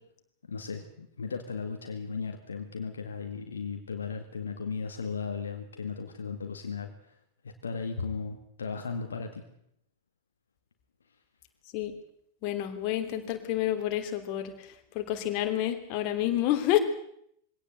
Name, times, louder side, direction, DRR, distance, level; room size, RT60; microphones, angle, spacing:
voice 1, 0.5-6.9 7.4-9.4, left 5 dB, 70° left, 5 dB, 2.0 m, -36 dB
voice 2, 12.4-16.8, left 13 dB, 45° left, 6 dB, 3.1 m, -29 dB
22.0 x 17.5 x 8.0 m, 0.72 s
figure-of-eight pair, 90°, 0 cm